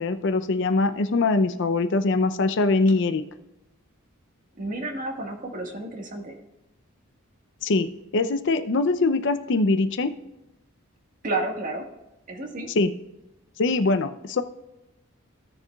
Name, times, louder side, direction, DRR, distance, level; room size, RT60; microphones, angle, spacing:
voice 1, 0.0-3.2 7.6-10.1 12.8-12.9 13.6-14.4, left 3 dB, 60° left, 10 dB, 0.5 m, -22 dB
voice 2, 4.6-6.3 11.2-11.9 12.3-12.7, right 2 dB, 40° right, 2 dB, 1.6 m, -31 dB
16.0 x 6.8 x 2.4 m, 0.95 s
head